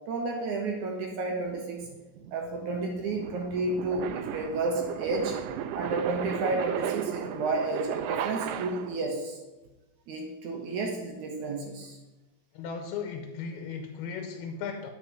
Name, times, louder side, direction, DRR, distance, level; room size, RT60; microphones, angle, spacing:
voice 1, 0.1-1.8 2.3-5.4 5.7-9.4 10.1-12.0, right 3 dB, 65° right, 1 dB, 2.2 m, -31 dB
sound 1, 1.5-9.1, right 10 dB, 85° right, 1.9 m, -35 dB
voice 2, 12.5-14.9, left 6 dB, 85° left, 5 dB, 2.7 m, -36 dB
8.7 x 4.9 x 7.3 m, 1.1 s
omnidirectional pair, 4.3 m